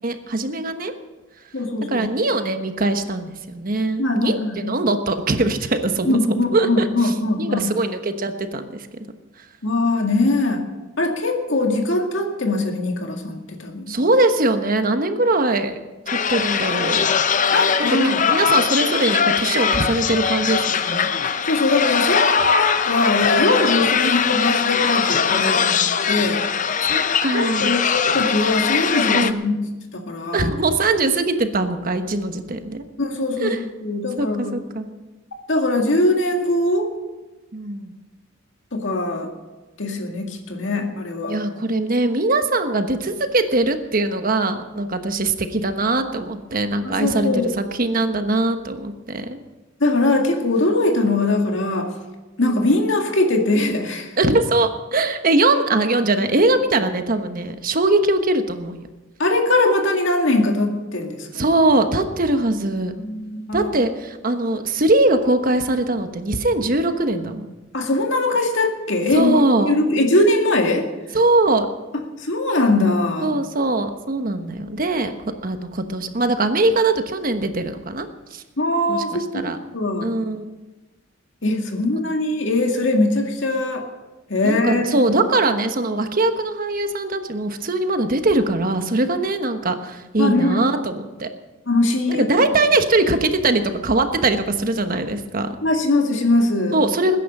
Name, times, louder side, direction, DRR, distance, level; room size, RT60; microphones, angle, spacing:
voice 1, 0.0-0.9 1.9-6.2 6.5-7.1 7.4-8.9 13.9-15.8 16.3-17.1 17.8-21.1 26.8-27.8 29.1-29.4 30.3-32.8 33.4-33.6 34.2-34.9 37.5-38.0 41.3-49.4 52.4-52.7 54.2-58.8 61.3-62.9 63.5-67.6 69.1-69.7 71.1-71.7 73.2-75.1 75.4-78.4 78.9-79.6 80.0-80.5 84.4-91.3 92.1-95.6 96.7-97.2, right 2 dB, 45° right, 8 dB, 1.2 m, -21 dB
voice 2, 1.5-2.0 4.0-4.8 6.1-7.7 9.6-10.6 11.0-14.0 17.5-18.2 21.4-26.4 27.3-29.5 29.9-30.5 33.0-34.6 35.5-36.9 38.7-39.3 39.8-41.4 46.8-47.5 49.8-51.9 52.4-54.1 59.2-61.4 62.9-63.7 67.7-70.8 72.2-73.4 78.6-79.5 79.7-80.1 81.4-83.8 84.3-85.0 90.2-90.6 91.7-92.2 95.6-96.8, left 2 dB, 70° left, 2 dB, 2.1 m, -21 dB
sound 1, 16.1-29.3, left 7 dB, 40° left, 0.6 m, -21 dB
20.5 x 10.0 x 5.4 m, 1.1 s
head